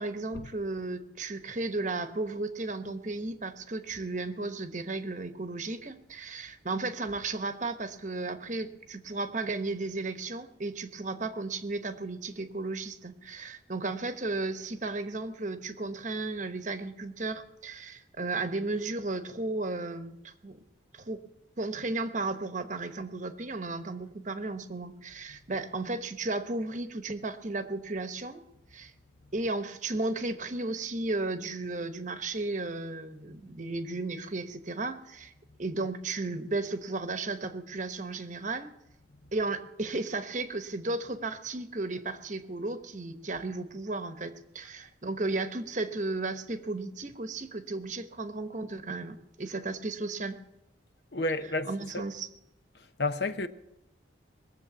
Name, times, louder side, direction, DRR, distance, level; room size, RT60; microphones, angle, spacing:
voice 1, 0.0-20.6 20.9-21.2 21.6-28.4 28.7-28.9 29.3-35.3 35.6-38.7 39.3-50.4 51.7-52.3, right 2 dB, 40° right, 1.0 m, -34 dB
voice 2, 51.1-52.1 53.0-53.5, left 2 dB, 60° left, 0.8 m, -31 dB
21.0 x 7.6 x 7.0 m
head